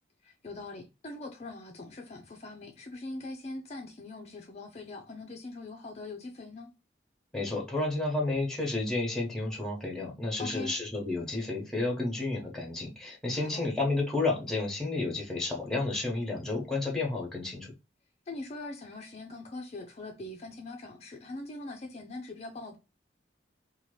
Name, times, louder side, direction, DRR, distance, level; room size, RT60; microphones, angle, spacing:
voice 1, 0.2-6.7 10.4-10.7 13.3-13.6 18.3-22.8, left 2 dB, 35° left, 0.4 m, -42 dB
voice 2, 7.3-17.7, left 2 dB, 5° left, 0.9 m, -31 dB
2.8 x 2.2 x 3.1 m
head